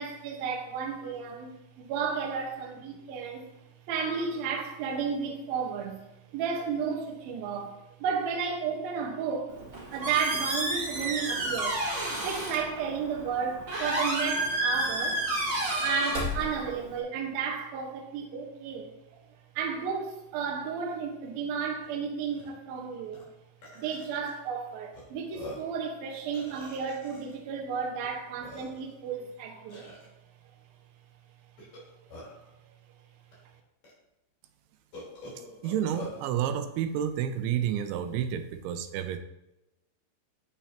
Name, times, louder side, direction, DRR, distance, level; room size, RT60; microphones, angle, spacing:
voice 1, 0.0-3.5 3.9-6.0 6.3-9.6 9.9-11.8 12.2-15.5 15.8-18.9 19.6-23.2 23.7-29.8, right 6 dB, 65° right, 2.7 m, -33 dB
Squeak, 9.5-17.0, right 1 dB, 35° right, 2.1 m, -31 dB
Burping eructation, 21.8-21.9 22.3-22.5 23.1-23.2 23.6-24.3 24.9-25.0 25.3-25.8 26.3-27.3 28.0-28.1 28.4-29.0 29.7-30.1 31.6-32.5 33.3-33.4 33.8-33.9 34.9-36.2, left 1 dB, 40° left, 4.7 m, -44 dB
voice 2, 35.6-39.2, right 9 dB, 85° right, 3.1 m, -30 dB
12.0 x 8.3 x 2.9 m
omnidirectional pair, 5.2 m